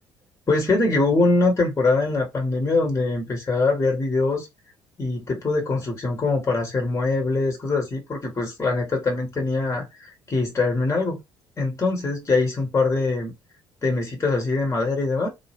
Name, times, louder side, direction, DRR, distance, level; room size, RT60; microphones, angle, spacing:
voice 1, 0.5-4.5 5.0-11.2 11.6-13.3 13.8-15.3, left 3 dB, 20° left, 1.5 m, -23 dB
2.9 x 2.4 x 3.0 m
figure-of-eight pair, 50°, 13 cm